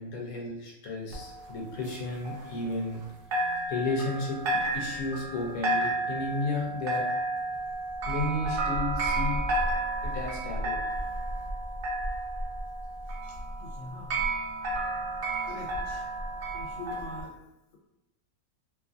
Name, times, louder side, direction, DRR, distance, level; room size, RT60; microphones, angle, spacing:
voice 1, 0.0-3.0 3.7-4.4 4.7-7.1 8.1-9.4 10.0-10.8, left 2 dB, 85° left, -2 dB, 1.1 m, -33 dB
sound 1, 1.1-3.0 3.3-17.2, right 1 dB, 65° right, 0.5 m, -32 dB
voice 2, 13.2-14.2 15.4-16.1 16.5-17.4, left 3 dB, 60° left, -2 dB, 1.0 m, -44 dB
2.7 x 2.4 x 2.4 m, 0.94 s
omnidirectional pair, 1.5 m